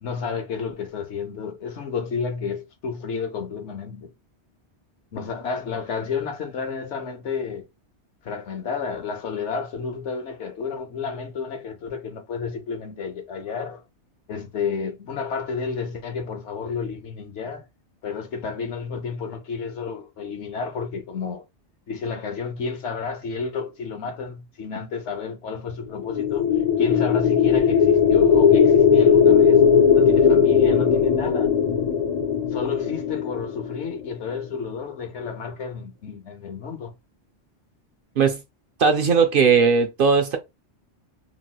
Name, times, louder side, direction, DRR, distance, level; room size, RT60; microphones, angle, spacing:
voice 1, 0.0-4.1 5.1-7.7 8.2-13.8 14.3-17.6 18.0-21.4 21.9-26.5 26.8-29.6 29.9-31.6 32.5-36.9, left 5 dB, 80° left, 1.1 m, -31 dB
sound 1, 26.0-34.1, left 7 dB, 55° left, 0.4 m, -18 dB
voice 2, 38.8-40.4, right 5 dB, 60° right, 0.7 m, -18 dB
3.0 x 2.9 x 2.3 m
omnidirectional pair, 1.2 m